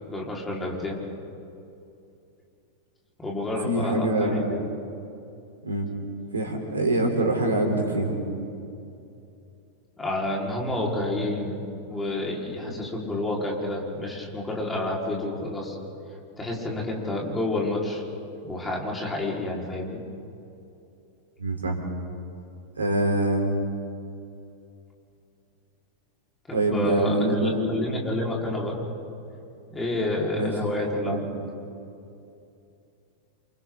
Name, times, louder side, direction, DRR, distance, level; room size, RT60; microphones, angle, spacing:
voice 1, 0.1-1.1 3.2-4.4 10.0-15.8 16.4-18.0 18.4-20.0 26.5-28.8 29.7-31.3, left 2 dB, 15° left, -2 dB, 5.0 m, -29 dB
voice 2, 3.6-4.4 5.6-5.9 6.3-8.2 12.7-12.8 21.4-21.8 22.8-23.4 26.5-27.7 30.4-30.5 31.0-31.2, right 1 dB, 75° right, 2 dB, 4.2 m, -24 dB
28.5 x 28.5 x 4.1 m, 2.7 s
figure-of-eight pair, 90°, 0 cm